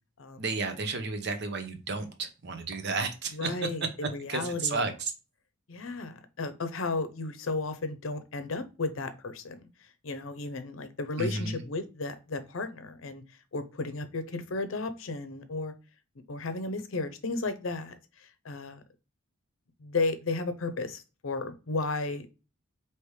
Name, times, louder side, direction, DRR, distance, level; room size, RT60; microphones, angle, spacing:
voice 1, 0.4-3.6 4.0-5.1 11.2-11.6, right 3 dB, 55° right, 7 dB, 0.8 m, -32 dB
voice 2, 3.3-3.8 4.1-4.8 5.7-9.6 10.0-13.2 13.5-15.7 16.3-17.9 18.4-18.8 19.8-22.3, left 3 dB, 70° left, 10 dB, 0.6 m, -33 dB
4.8 x 2.9 x 3.2 m, 0.31 s
head